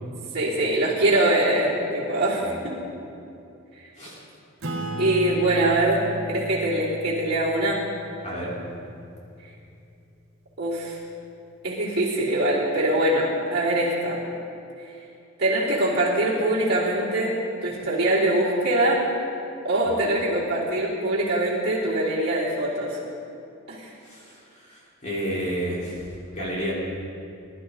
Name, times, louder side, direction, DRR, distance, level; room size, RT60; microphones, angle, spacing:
voice 1, 0.3-2.8 5.0-7.8 10.6-11.0 11.6-14.2 15.4-19.0 19.6-23.0 23.7-23.9, right 1 dB, 50° right, -8 dB, 3.3 m, -23 dB
Acoustic guitar / Strum, 4.6-9.6, equal, 70° right, 1.9 m, -35 dB
voice 2, 8.2-8.5 19.9-20.0 24.0-26.0 26.3-26.7, equal, 35° left, -7 dB, 4.0 m, -31 dB
21.0 x 12.0 x 3.9 m, 2.6 s
head